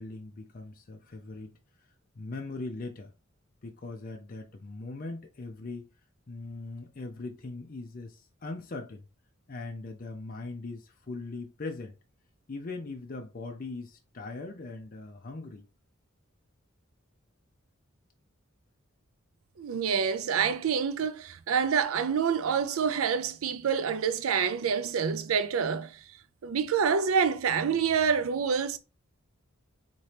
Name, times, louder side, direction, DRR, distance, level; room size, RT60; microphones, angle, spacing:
voice 1, 0.0-1.5 2.1-3.1 3.6-5.9 6.3-9.1 9.5-12.0 12.5-15.7, left 3 dB, 40° left, 0.5 m, -40 dB
voice 2, 19.6-26.0 26.4-28.8, right 6 dB, 85° right, 0.5 m, -27 dB
4.3 x 2.9 x 3.3 m
head